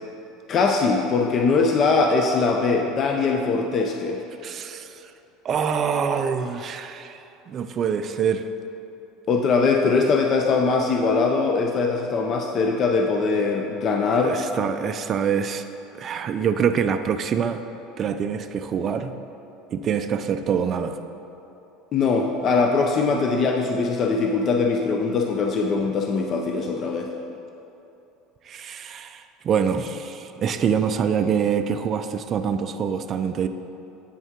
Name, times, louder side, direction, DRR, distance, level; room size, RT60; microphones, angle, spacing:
voice 1, 0.5-4.2 9.3-14.4 21.9-27.1, left 4 dB, 35° left, 2 dB, 0.4 m, -21 dB
voice 2, 4.4-5.1 5.4-8.5 14.2-15.6 15.9-17.6 18.0-19.2 19.7-21.0 28.4-33.5, right 7 dB, 35° right, 8 dB, 0.3 m, -25 dB
8.3 x 5.4 x 3.7 m, 2.9 s
supercardioid pair, 135°, 0 cm